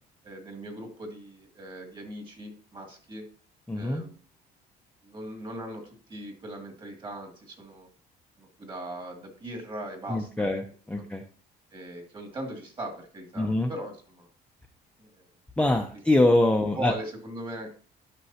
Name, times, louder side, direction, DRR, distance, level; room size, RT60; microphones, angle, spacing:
voice 1, 0.2-3.2 3.7-4.2 5.0-7.9 8.4-10.5 11.7-14.3 15.0-15.2 16.7-17.7, right 1 dB, 30° right, 3 dB, 2.5 m, -39 dB
voice 2, 3.7-4.0 10.1-10.6 10.9-11.2 13.4-13.7 15.6-16.9, left 1 dB, 5° left, 2 dB, 0.7 m, -23 dB
11.0 x 5.3 x 2.9 m, 0.42 s
cardioid pair, 110°, 17 cm